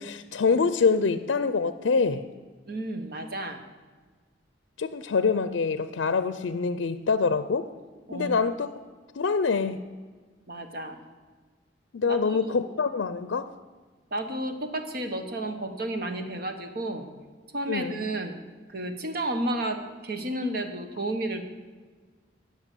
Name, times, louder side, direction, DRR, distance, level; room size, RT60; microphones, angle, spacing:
voice 1, 0.0-2.2 4.8-7.7 8.1-8.7 9.2-9.8 11.9-13.5 17.7-18.0, left 5 dB, 90° left, 12 dB, 0.5 m, -25 dB
voice 2, 2.7-3.6 8.1-8.4 10.5-11.0 12.0-12.6 14.1-17.1 17.5-18.4 18.7-21.4, right 1 dB, 55° right, 6 dB, 1.3 m, -32 dB
16.0 x 5.8 x 8.4 m, 1.4 s
head